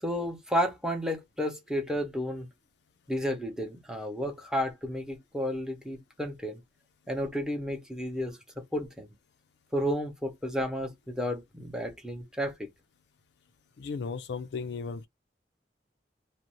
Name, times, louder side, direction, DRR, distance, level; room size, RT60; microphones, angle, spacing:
voice 1, 0.0-2.5 3.1-6.6 7.1-9.1 9.7-12.7, equal, 5° right, 0.7 m, -32 dB
voice 2, 13.8-15.1, left 5 dB, 65° left, 0.4 m, -35 dB
2.5 x 2.0 x 2.9 m
head